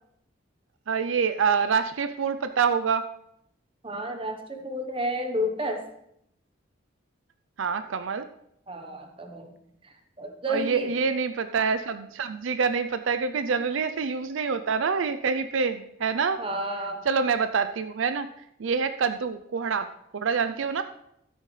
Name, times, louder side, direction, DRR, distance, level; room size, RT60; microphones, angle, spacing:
voice 1, 0.9-3.0 7.6-8.3 10.5-16.4 17.1-18.3 18.6-19.9 20.1-20.8, right 5 dB, 75° right, 10 dB, 0.5 m, -26 dB
voice 2, 3.8-5.9 8.7-9.5 10.2-10.9 16.4-17.0, equal, 25° right, 5 dB, 1.1 m, -31 dB
12.5 x 9.6 x 3.3 m, 0.76 s
head